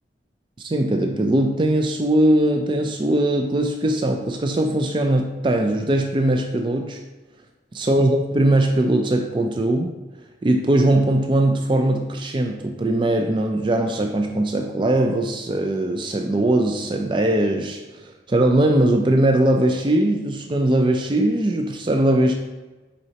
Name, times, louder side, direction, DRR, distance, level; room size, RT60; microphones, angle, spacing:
voice 1, 0.6-7.0 7.7-9.9 10.4-22.3, right 1 dB, 25° right, 4 dB, 0.4 m, -20 dB
7.9 x 4.2 x 2.8 m, 1.2 s
head